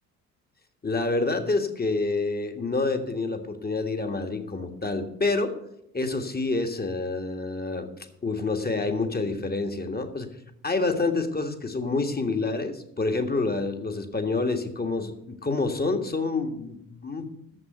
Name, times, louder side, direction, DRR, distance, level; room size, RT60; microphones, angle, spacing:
voice 1, 0.8-5.5 5.9-7.9 8.2-10.3 10.6-17.3, left 3 dB, 20° left, 7 dB, 1.7 m, -27 dB
10.0 x 7.6 x 7.9 m, 0.78 s
figure-of-eight pair, 40°, 46 cm